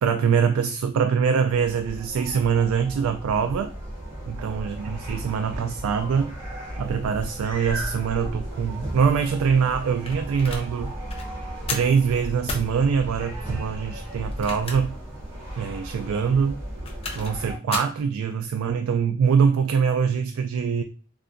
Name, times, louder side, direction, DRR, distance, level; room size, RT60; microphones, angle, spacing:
voice 1, 0.0-3.7 4.3-6.3 6.8-10.9 11.7-14.9 15.6-16.6 17.2-20.8, right 6 dB, 85° right, 8 dB, 0.3 m, -23 dB
sound 1, 1.5-17.6, right 1 dB, 20° right, 1.5 m, -35 dB
sound 2, 10.1-10.7 11.1-11.3 11.7-12.0 12.5-12.7 14.2-15.0 15.4-15.5 16.6-17.4 17.7-18.0, left 3 dB, 30° left, 0.5 m, -33 dB
3.3 x 2.7 x 2.5 m, 0.41 s
head